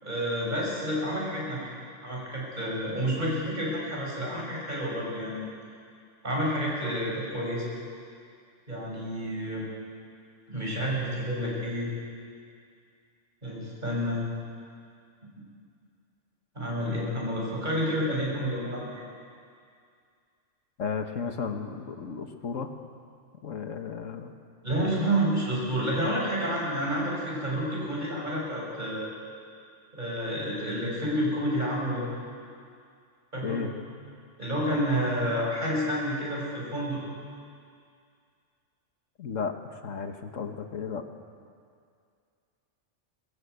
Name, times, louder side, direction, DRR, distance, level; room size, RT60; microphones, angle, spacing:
voice 1, 0.0-1.7 2.0-5.5 6.2-7.7 8.7-9.6 10.5-11.9 13.4-14.2 16.6-19.0 24.6-29.1 29.9-32.1 33.3-33.6 34.4-37.0, equal, 35° right, -4 dB, 6.9 m, -29 dB
voice 2, 20.8-22.7 23.4-24.3 33.4-33.7 39.2-41.0, left 6 dB, 90° left, 6 dB, 1.7 m, -34 dB
21.5 x 21.5 x 8.2 m, 2.3 s
omnidirectional pair, 1.3 m